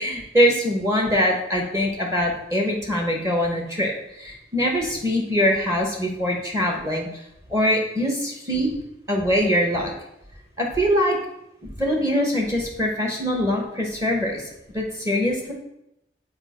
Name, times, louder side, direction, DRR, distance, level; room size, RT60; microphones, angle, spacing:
voice 1, 0.0-3.9 4.2-7.1 7.5-8.7 9.1-9.9 10.6-11.2 11.8-14.4 14.7-15.5, equal, 15° right, 0 dB, 0.9 m, -23 dB
8.0 x 4.3 x 4.1 m, 0.82 s
head